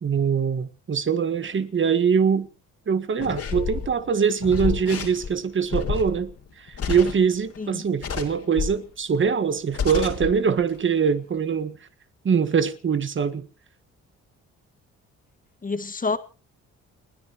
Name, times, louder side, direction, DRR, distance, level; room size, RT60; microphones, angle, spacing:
voice 1, 0.0-2.5 2.9-6.3 6.6-11.8 12.2-13.5, right 6 dB, 40° right, 1.6 m, -23 dB
sound 1, 3.2-7.6 8.0-8.9 9.3-9.4 9.7-10.4 10.6-10.8, left 6 dB, 55° left, 3.5 m, -30 dB
voice 2, 15.6-16.2, left 4 dB, 25° left, 1.9 m, -28 dB
29.5 x 10.0 x 3.0 m
cardioid pair, 90°, 30 cm